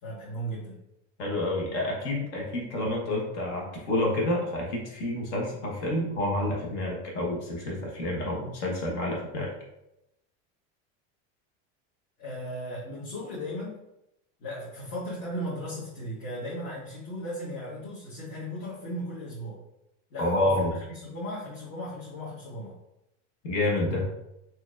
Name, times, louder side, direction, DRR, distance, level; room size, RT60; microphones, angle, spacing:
voice 1, 0.0-0.8 12.2-13.8 14.4-19.6 20.1-20.7 21.0-22.8, equal, 50° left, -8 dB, 1.4 m, -36 dB
voice 2, 1.2-9.5 20.2-20.7 23.4-24.0, left 1 dB, 75° left, -1 dB, 1.2 m, -29 dB
4.4 x 2.8 x 2.4 m, 0.85 s
supercardioid pair, 140°, 35 cm